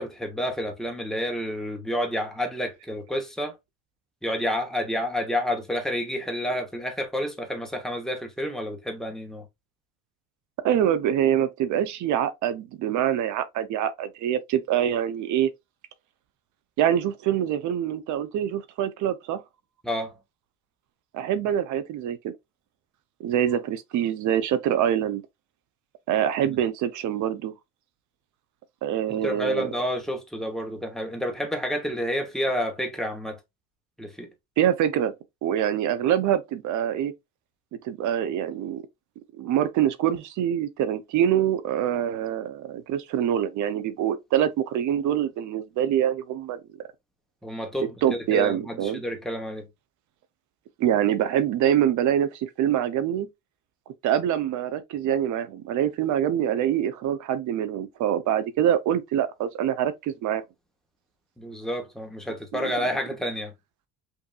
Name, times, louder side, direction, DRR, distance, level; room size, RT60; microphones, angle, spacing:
voice 1, 0.0-3.6 4.2-9.5 19.8-20.2 26.4-26.6 29.1-33.4 34.0-34.3 47.4-49.7 61.4-63.5, equal, ahead, 0.9 m, -29 dB
voice 2, 10.6-15.5 16.8-19.4 21.1-22.3 23.2-25.2 26.1-27.5 28.8-29.7 34.6-35.1 35.4-37.1 37.8-38.8 39.4-46.6 48.0-49.0 50.8-53.3 54.0-60.4 62.5-62.7, right 10 dB, 55° right, 0.6 m, -25 dB
5.3 x 2.6 x 2.3 m
cardioid pair, 140°, 36 cm